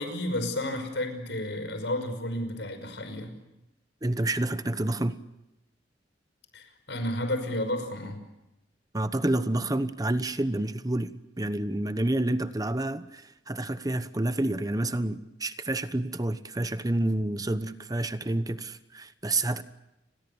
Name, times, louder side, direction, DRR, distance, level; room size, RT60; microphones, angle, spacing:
voice 1, 0.0-3.3 6.5-8.2, left 1 dB, 85° left, 8 dB, 5.8 m, -32 dB
voice 2, 4.0-5.2 8.9-11.1 11.4-19.6, right 1 dB, 20° right, 12 dB, 1.0 m, -29 dB
30.0 x 22.0 x 7.1 m, 0.92 s
head